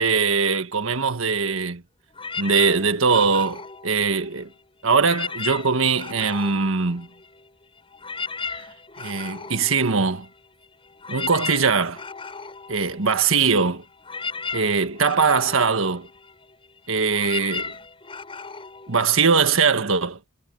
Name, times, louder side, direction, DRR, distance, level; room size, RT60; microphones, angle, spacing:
voice 1, 0.0-1.8 2.4-4.5 4.8-7.1 9.0-10.3 11.1-12.0 12.7-13.8 14.5-16.1 16.9-17.7 18.9-20.2, right 5 dB, 80° right, 1.5 m, -21 dB
sound 1, 2.1-4.6 4.9-7.5 7.8-19.7, left 5 dB, 25° left, 6.6 m, -36 dB
head